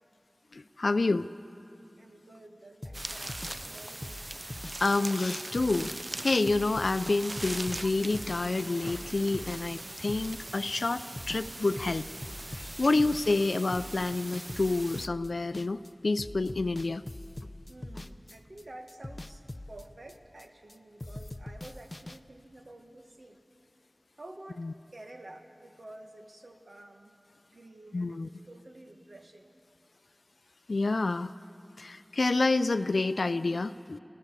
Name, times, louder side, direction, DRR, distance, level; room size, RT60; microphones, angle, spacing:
voice 1, 0.5-1.3 4.8-5.9 6.2-12.1 12.8-17.0 24.6-24.7 27.9-28.3 30.7-31.3 31.8-34.0, left 3 dB, 90° left, 13 dB, 0.4 m, -28 dB
voice 2, 2.0-4.1 17.7-19.4 19.7-23.4 24.2-24.7 24.9-27.1 27.5-29.5, right 1 dB, 80° right, 4 dB, 1.5 m, -50 dB
sound 1, 2.8-11.5 11.8-15.9 16.1-20.7 21.0-22.2, left 1 dB, 40° left, 0.6 m, -43 dB
sound 2, 2.9-15.1, right 1 dB, 40° right, 0.4 m, -41 dB
24.0 x 14.5 x 8.2 m, 2.9 s
wide cardioid pair, 50°, 0 cm